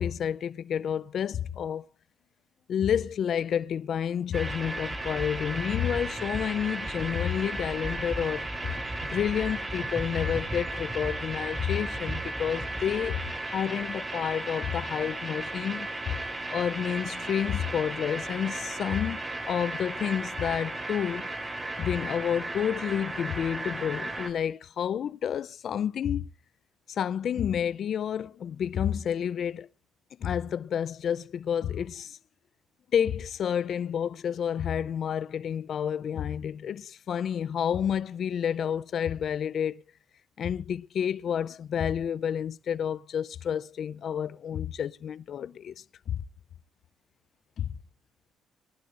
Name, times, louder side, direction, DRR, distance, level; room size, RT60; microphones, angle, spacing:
voice 1, 0.0-1.9 2.7-8.5 9.0-16.2 16.5-19.2 19.5-21.3 21.8-26.3 26.9-29.7 30.2-32.2 32.9-39.8 40.4-45.7 46.1-46.2 47.6-47.7, left 8 dB, 60° left, 0.6 m, -30 dB
sound 1, 4.3-24.3, right 2 dB, 20° right, 3.7 m, -35 dB
23.0 x 11.5 x 2.6 m
cardioid pair, 90°, 0 cm